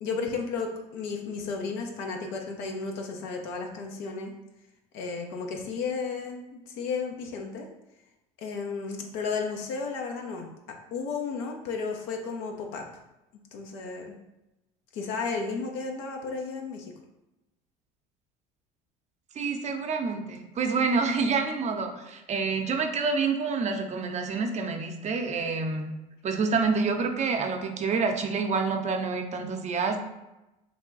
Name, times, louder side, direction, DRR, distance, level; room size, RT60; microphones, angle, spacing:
voice 1, 0.0-4.3 4.9-7.7 8.4-12.9 13.5-14.1 14.9-16.9, left 4 dB, 70° left, 2 dB, 0.6 m, -33 dB
voice 2, 19.4-25.9 26.2-30.0, right 4 dB, 40° right, 5 dB, 0.6 m, -27 dB
3.3 x 2.2 x 3.9 m, 0.96 s
hypercardioid pair, 75°, 19 cm